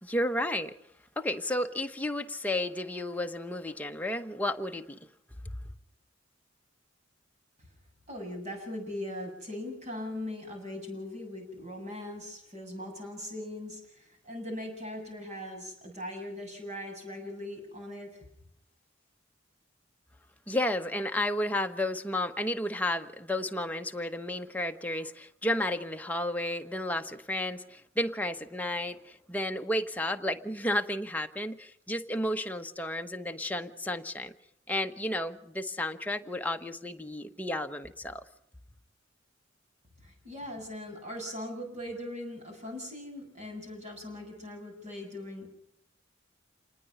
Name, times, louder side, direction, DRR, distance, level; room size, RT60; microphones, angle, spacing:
voice 1, 0.0-0.7 1.2-5.0 5.6-5.7 20.5-34.3 34.7-38.2, left 1 dB, 10° left, 1.1 m, -32 dB
voice 2, 8.1-18.2 40.0-45.5, left 1 dB, 35° right, 7.5 m, -40 dB
28.0 x 20.0 x 5.7 m
head